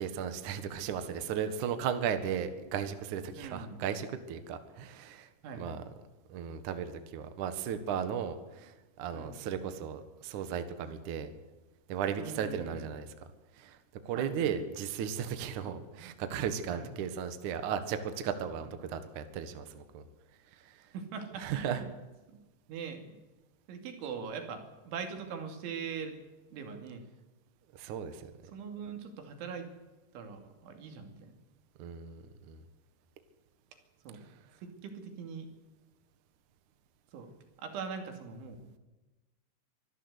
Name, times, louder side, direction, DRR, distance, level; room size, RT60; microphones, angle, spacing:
voice 1, 0.0-5.3 5.5-5.8 6.3-11.3 11.9-13.1 13.6-13.8 14.1-20.0 20.5-20.8 21.4-21.8 27.7-28.3 31.8-32.6, right 8 dB, 60° right, 9 dB, 2.3 m, -36 dB
voice 2, 3.4-3.8 5.4-5.8 9.1-9.3 10.8-11.0 12.2-12.9 14.1-14.5 15.6-15.8 16.7-16.9 20.9-21.9 22.3-22.4 22.7-23.2 23.7-26.2 26.5-27.0 28.5-29.7 30.1-31.3 34.1-34.3 34.6-35.5 37.1-37.3 37.6-38.7, right 6 dB, 80° right, 5 dB, 4.9 m, -41 dB
24.5 x 14.0 x 8.3 m, 1.1 s
omnidirectional pair, 5.4 m